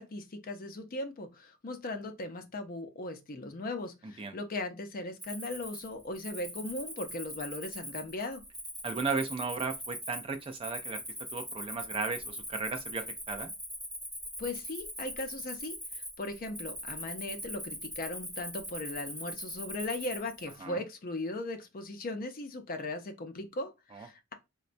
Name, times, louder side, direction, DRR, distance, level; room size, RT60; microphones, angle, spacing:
voice 1, 0.0-8.4 14.4-15.8 16.2-24.3, left 2 dB, 40° left, 0.5 m, -38 dB
voice 2, 4.0-4.4 8.8-11.0 11.3-13.5 20.6-20.8 23.9-24.1, right 4 dB, 25° right, 0.3 m, -35 dB
Cricket, 5.2-20.6, equal, ahead, 1.2 m, -42 dB
4.0 x 2.2 x 2.5 m
head